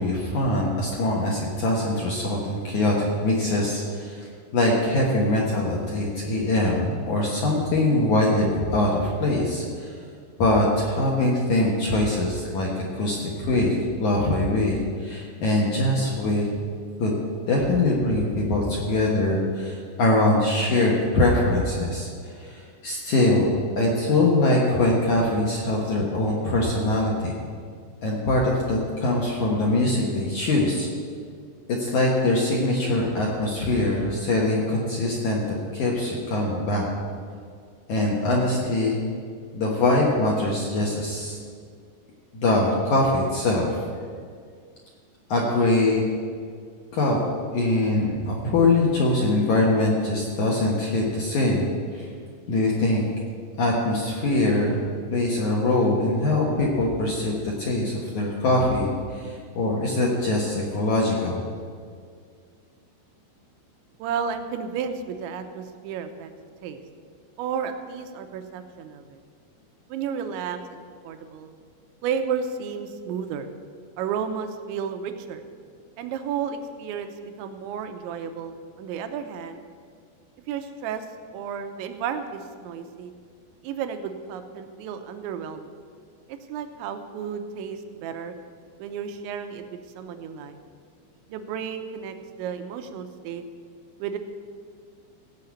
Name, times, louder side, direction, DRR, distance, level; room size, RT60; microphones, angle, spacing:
voice 1, 0.0-10.0 10.4-16.5 17.0-17.1 17.5-23.5 23.8-27.4 28.0-30.9 31.7-36.9 37.9-39.0 39.5-41.4 42.3-43.8 45.3-46.0 46.9-47.2 47.5-52.1 52.5-53.1 53.6-54.8 55.1-61.4, left 2 dB, 65° left, -2 dB, 1.9 m, -23 dB
voice 2, 64.0-66.3 66.6-66.8 67.4-69.2 69.9-71.5 72.0-73.5 74.0-75.4 76.0-79.6 80.5-81.1 81.3-83.1 83.6-85.7 86.3-88.3 88.8-90.6 91.3-93.4 94.0-94.2, right 7 dB, 90° right, 7 dB, 3.1 m, -32 dB
16.5 x 5.7 x 8.4 m, 2.1 s
omnidirectional pair, 5.3 m